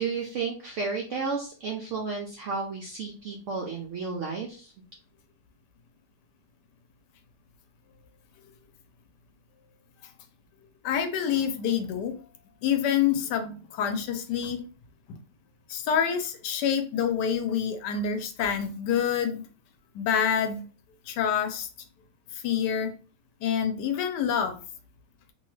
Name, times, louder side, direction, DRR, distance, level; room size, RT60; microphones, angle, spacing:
voice 1, 0.0-4.7, right 4 dB, 90° right, 0 dB, 0.6 m, -32 dB
voice 2, 10.8-12.1 12.6-14.6 15.1-15.2 15.7-19.5 19.9-20.6 21.1-21.7 22.3-22.9 23.4-24.6, left 8 dB, 75° left, 7 dB, 1.1 m, -27 dB
3.0 x 2.3 x 3.1 m, 0.37 s
omnidirectional pair, 1.9 m